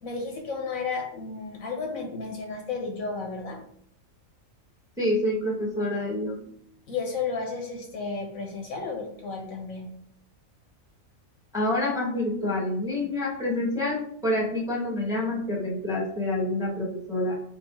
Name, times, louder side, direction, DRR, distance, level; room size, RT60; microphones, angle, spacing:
voice 1, 0.0-3.6 6.9-9.9, left 4 dB, 85° left, 1 dB, 1.5 m, -33 dB
voice 2, 5.0-6.4 11.5-17.3, left 1 dB, 5° right, -2 dB, 1.0 m, -27 dB
4.4 x 2.6 x 4.4 m, 0.67 s
omnidirectional pair, 1.4 m